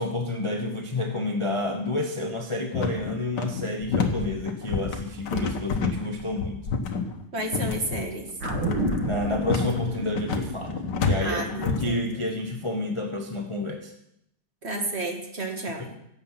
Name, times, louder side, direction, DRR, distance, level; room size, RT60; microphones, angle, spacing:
voice 1, 0.0-6.6 9.0-13.9 15.8-15.9, left 2 dB, 25° left, 3 dB, 0.7 m, -29 dB
sound 1, 2.7-11.9, left 5 dB, 55° left, 1.7 m, -28 dB
voice 2, 7.3-8.3 11.2-12.0 14.6-16.0, right 2 dB, 30° right, 3 dB, 1.8 m, -31 dB
sound 2, 8.4-13.0 13.3-13.4, right 2 dB, 70° right, 2.8 m, -33 dB
16.5 x 7.8 x 5.8 m, 0.78 s
omnidirectional pair, 2.4 m